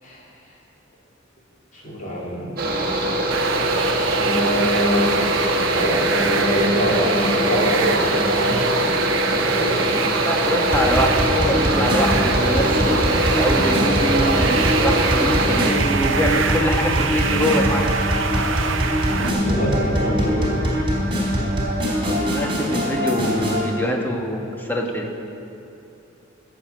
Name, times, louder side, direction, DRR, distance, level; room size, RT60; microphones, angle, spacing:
voice 1, 1.7-2.8 4.1-5.2 5.7-8.6 9.4-9.9 19.2-20.6, equal, 40° left, -6 dB, 3.6 m, -24 dB
Mechanical fan, 2.6-15.7, equal, 50° right, 1.5 m, -23 dB
sound 1, 3.3-19.3, right 5 dB, 70° right, 0.7 m, -25 dB
voice 2, 10.2-17.9 22.0-25.1, equal, 10° left, 1 dB, 1.3 m, -24 dB
sound 2, 10.7-23.6, equal, 25° right, 3.3 m, -23 dB
15.0 x 7.2 x 7.8 m, 2.9 s
head